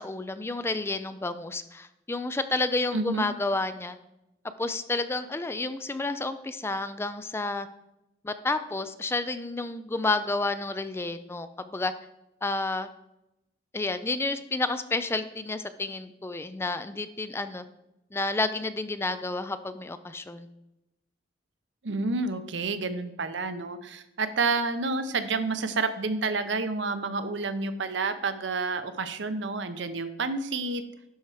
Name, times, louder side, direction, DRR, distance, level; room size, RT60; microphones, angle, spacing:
voice 1, 0.0-4.0 4.6-7.7 8.2-11.9 12.4-12.9 13.7-17.6 18.1-20.5, left 2 dB, 15° left, 11 dB, 0.4 m, -30 dB
voice 2, 2.9-3.3 21.8-30.8, right 3 dB, 80° right, 10 dB, 0.8 m, -29 dB
11.0 x 4.4 x 4.8 m, 0.91 s
head